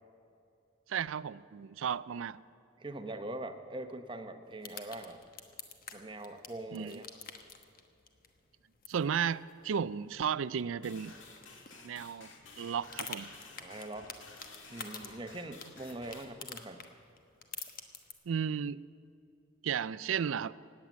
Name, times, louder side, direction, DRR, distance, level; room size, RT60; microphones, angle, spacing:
voice 1, 0.9-2.4 6.7-7.0 8.9-11.1 11.8-12.3 12.6-13.3 18.3-18.8 19.6-20.6, right 7 dB, 85° right, 18 dB, 0.4 m, -34 dB
voice 2, 2.8-5.2 5.9-7.1 13.6-14.1 14.7-16.9, right 1 dB, 25° right, 7 dB, 0.9 m, -42 dB
sound 1, 4.5-18.1, left 6 dB, 45° left, 1.2 m, -50 dB
sound 2, 10.8-16.2, left 3 dB, 70° left, 1.9 m, -53 dB
17.0 x 9.6 x 7.3 m, 2.7 s
head